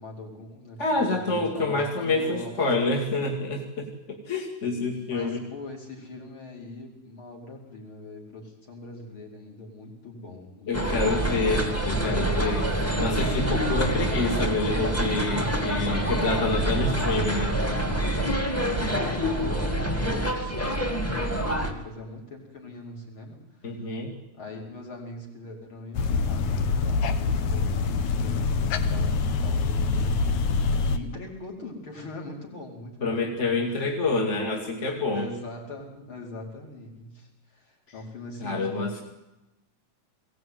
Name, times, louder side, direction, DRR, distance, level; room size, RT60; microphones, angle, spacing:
voice 1, 0.0-0.8 1.1-2.9 5.1-11.7 13.6-14.3 18.7-23.8 24.3-30.4 30.9-33.6 35.1-39.0, left 2 dB, 40° left, 0 dB, 5.5 m, -41 dB
voice 2, 0.8-5.4 10.7-17.5 23.6-24.1 33.0-35.3 38.4-39.0, left 3 dB, 25° left, 1 dB, 2.4 m, -27 dB
sound 1, 10.7-21.7, right 1 dB, 5° left, 1.7 m, -26 dB
sound 2, 25.9-31.0, left 4 dB, 75° left, 2.6 m, -25 dB
22.0 x 17.5 x 9.4 m, 0.96 s
omnidirectional pair, 3.4 m